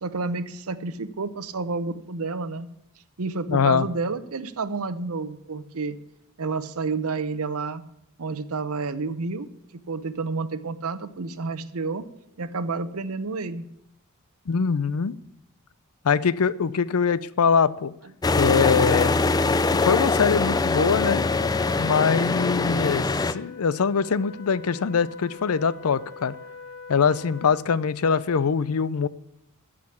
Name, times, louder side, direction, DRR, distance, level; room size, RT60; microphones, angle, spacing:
voice 1, 0.0-2.7 3.2-6.0 6.4-7.8 8.2-9.5 9.9-12.0 12.4-13.7, right 4 dB, 80° right, 13 dB, 0.8 m, -30 dB
voice 2, 3.5-3.9 14.5-15.2 16.0-17.9 18.3-19.1 19.7-21.2 21.8-26.3 26.9-29.1, left 6 dB, 80° left, 18 dB, 0.5 m, -23 dB
sound 1, 18.2-23.3, left 3 dB, 15° left, 0.3 m, -23 dB
Wind instrument woodwind instrument, 23.2-27.8, left 4 dB, 50° left, 1.8 m, -43 dB
14.5 x 5.0 x 8.3 m, 0.80 s
head